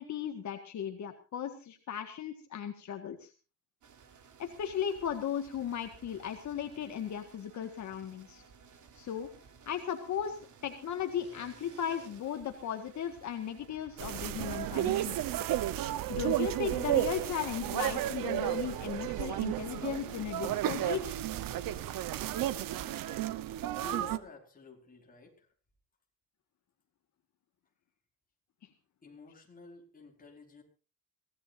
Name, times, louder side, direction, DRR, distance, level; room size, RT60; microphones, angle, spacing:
voice 1, 0.0-3.3 4.4-8.4 8.9-9.3 9.7-15.2 16.1-21.2, left 9 dB, 60° left, 5 dB, 1.8 m, -36 dB
sound 1, 3.8-22.0, right 6 dB, 60° right, 3.7 m, -55 dB
sound 2, 14.0-24.2, right 13 dB, 85° right, 1.1 m, -33 dB
voice 2, 23.7-25.5 29.0-30.6, left 3 dB, 25° left, 2 dB, 4.8 m, -50 dB
23.5 x 17.0 x 2.7 m, 0.35 s
cardioid pair, 135°, 33 cm